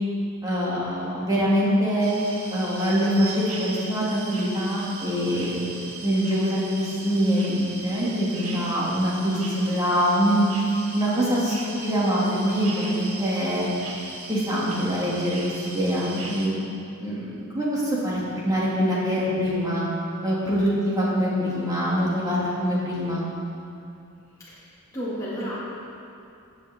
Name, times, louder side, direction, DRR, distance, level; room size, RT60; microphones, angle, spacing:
voice 1, 0.4-2.1 2.5-5.7 6.0-10.4 10.9-13.7 14.3-16.5 17.0-19.9 20.2-23.2, equal, 15° right, -7 dB, 2.4 m, -24 dB
sound 1, 2.0-16.5, right 3 dB, 75° right, 1.4 m, -38 dB
voice 2, 24.5-25.6, equal, 15° left, -11 dB, 2.2 m, -32 dB
16.5 x 6.7 x 3.6 m, 2.6 s
head